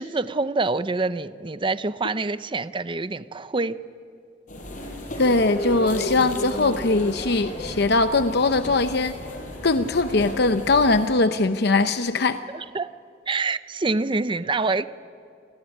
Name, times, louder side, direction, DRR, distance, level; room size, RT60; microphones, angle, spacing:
voice 1, 0.0-3.8 12.5-12.9 13.3-14.9, right 3 dB, 30° right, 13 dB, 0.7 m, -26 dB
sound 1, 4.5-11.1, left 1 dB, 45° left, 5.5 m, -34 dB
voice 2, 5.2-9.1 9.6-12.4, left 3 dB, 60° left, 9 dB, 0.8 m, -21 dB
28.5 x 20.0 x 9.8 m, 2.4 s
head